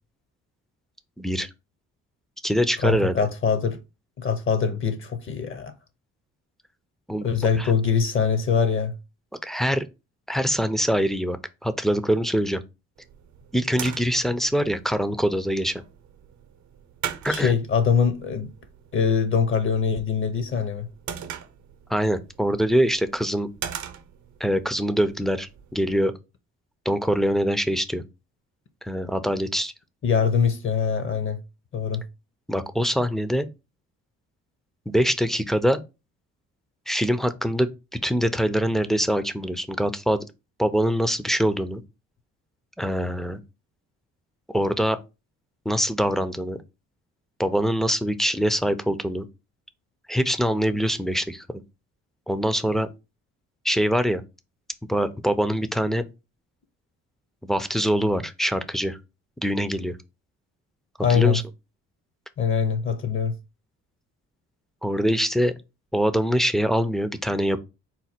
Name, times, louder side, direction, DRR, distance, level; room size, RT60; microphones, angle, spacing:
voice 1, 1.2-1.5 2.4-3.2 7.1-7.3 7.6-7.7 9.4-9.8 10.3-12.6 13.5-15.8 17.2-17.5 21.9-23.5 24.4-26.1 26.9-28.0 28.8-29.7 32.5-33.5 34.9-35.8 36.9-40.2 40.6-41.8 42.8-43.4 44.5-45.0 45.7-46.6 47.4-49.3 50.1-51.6 52.3-52.9 53.6-54.2 54.9-56.0 57.4-59.0 59.4-60.0 61.1-61.4 64.8-65.5 65.9-67.6, equal, ahead, 0.4 m, -24 dB
voice 2, 2.8-3.8 4.2-5.7 7.2-8.9 17.3-18.5 18.9-20.9 30.0-31.4 31.7-32.0 61.0-61.4 62.4-63.3, left 6 dB, 40° left, 0.6 m, -23 dB
sound 1, 13.0-26.0, right 9 dB, 65° right, 0.7 m, -41 dB
4.1 x 2.2 x 4.2 m
cardioid pair, 90°, 30 cm